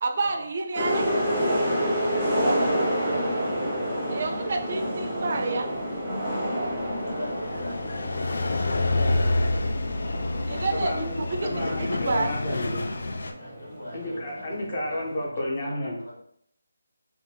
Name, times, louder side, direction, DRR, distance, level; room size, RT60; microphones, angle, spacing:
voice 1, 0.0-1.1 4.1-5.7 9.2-9.4 10.5-12.3, right 3 dB, 45° right, 4 dB, 0.4 m, -29 dB
sound 1, 0.7-15.2, equal, 5° right, 0.7 m, -29 dB
voice 2, 1.8-2.7 3.2-4.3 7.0-8.3 13.3-15.0 15.3-15.4 16.0-16.1, equal, 85° left, -3 dB, 1.1 m, -41 dB
sound 2, 5.8-13.3, left 2 dB, 70° left, 0.3 m, -28 dB
voice 3, 10.7-12.9 13.9-16.0, left 1 dB, 35° left, -3 dB, 0.9 m, -31 dB
2.5 x 2.3 x 3.2 m, 0.69 s
figure-of-eight pair, 165°, 0 cm